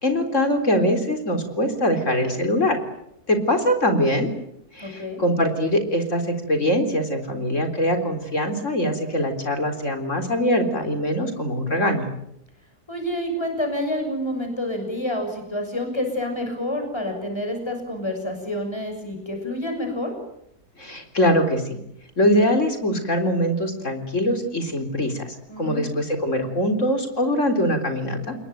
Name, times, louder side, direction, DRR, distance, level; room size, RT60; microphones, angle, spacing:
voice 1, 0.0-2.8 3.3-4.3 4.7-6.2 6.5-12.1 20.8-21.8 22.2-28.4, equal, 50° left, 6 dB, 4.2 m, -22 dB
voice 2, 4.8-5.2 12.9-20.1 25.5-25.9, left 1 dB, 15° left, 4 dB, 6.8 m, -28 dB
28.5 x 21.5 x 9.3 m, 0.80 s
omnidirectional pair, 1.7 m